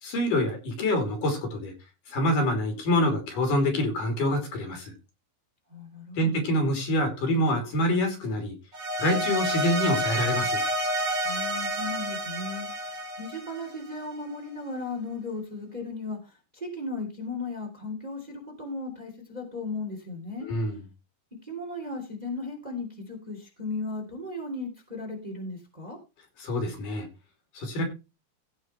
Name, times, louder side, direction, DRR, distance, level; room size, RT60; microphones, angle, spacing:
voice 1, 0.0-1.7 2.1-4.9 6.2-8.5 9.0-10.6 20.4-20.8 26.4-27.1 27.5-27.8, left 1 dB, 60° left, 4 dB, 4.5 m, -26 dB
voice 2, 5.7-6.4 11.2-20.5 21.4-26.0, left 3 dB, 10° right, 1 dB, 2.6 m, -36 dB
sound 1, 8.7-14.1, right 1 dB, 35° right, 2.7 m, -29 dB
16.5 x 5.6 x 4.4 m, 0.29 s
omnidirectional pair, 4.3 m